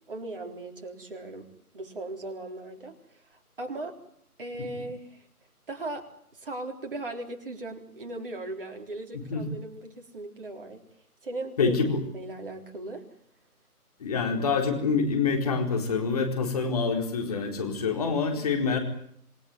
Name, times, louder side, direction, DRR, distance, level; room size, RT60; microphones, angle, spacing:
voice 1, 0.1-1.5 1.7-4.0 4.4-5.2 5.7-10.8 11.2-11.8 12.1-13.1, right 2 dB, 35° right, 3 dB, 4.0 m, -38 dB
voice 2, 9.1-9.4 11.6-12.0 14.0-18.8, left 5 dB, 25° left, 3 dB, 4.3 m, -26 dB
28.0 x 19.0 x 9.4 m, 0.68 s
figure-of-eight pair, 160°, 46 cm